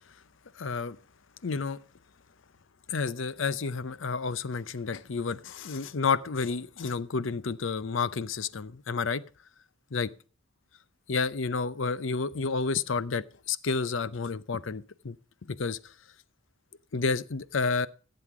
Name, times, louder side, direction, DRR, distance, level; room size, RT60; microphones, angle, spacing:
voice 1, 0.6-1.0 1.4-1.8 2.9-9.2 9.9-10.1 11.1-15.2 15.4-15.9 16.9-17.9, left 4 dB, 70° left, 0.6 m, -30 dB
15.0 x 7.8 x 4.7 m
head